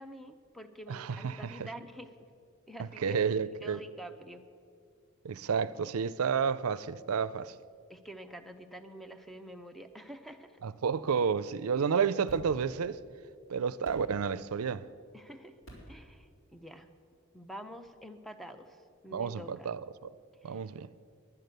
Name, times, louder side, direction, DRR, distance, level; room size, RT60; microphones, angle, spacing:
voice 1, 0.0-2.1 2.7-3.2 3.6-4.5 5.4-5.5 7.9-10.6 15.1-15.5 15.9-16.9 17.3-19.7 20.4-20.7, equal, ahead, 0.6 m, -47 dB
voice 2, 0.9-1.7 2.8-3.8 5.2-7.6 10.6-13.0 13.5-14.8 19.1-20.1 20.4-20.9, right 6 dB, 80° right, 0.5 m, -31 dB
sound 1, 12.2-13.2 13.7-14.9 15.6-16.3 17.8-17.9, right 1 dB, 70° left, 4.2 m, -50 dB
11.0 x 11.0 x 6.6 m
head